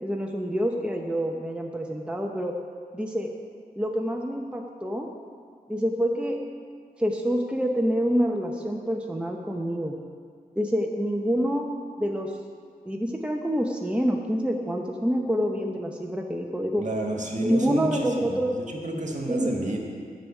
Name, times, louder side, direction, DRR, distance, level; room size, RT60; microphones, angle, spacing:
voice 1, 0.0-2.6 2.9-3.3 3.8-5.1 5.7-6.4 7.0-10.0 10.6-11.7 12.0-12.4 12.8-16.9 17.4-18.6 19.3-19.5, equal, 5° right, 1 dB, 0.8 m, -27 dB
voice 2, 16.8-19.8, right 1 dB, 50° right, 0 dB, 1.8 m, -30 dB
8.3 x 6.4 x 8.3 m, 2.1 s
wide cardioid pair, 70°, 16 cm